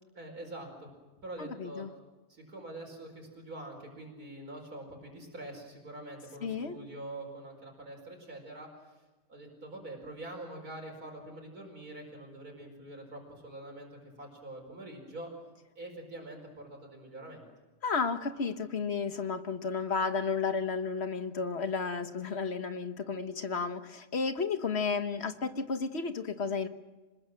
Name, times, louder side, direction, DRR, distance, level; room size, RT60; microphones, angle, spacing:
voice 1, 0.1-0.9 1.2-1.9 2.3-8.7 9.3-13.9 14.2-15.3 15.8-17.5, right 1 dB, 70° right, 1 dB, 5.3 m, -45 dB
voice 2, 1.4-1.9 6.4-6.8 17.8-26.7, left 5 dB, 45° left, 9 dB, 1.4 m, -32 dB
26.5 x 20.5 x 7.7 m, 1.2 s
omnidirectional pair, 1.7 m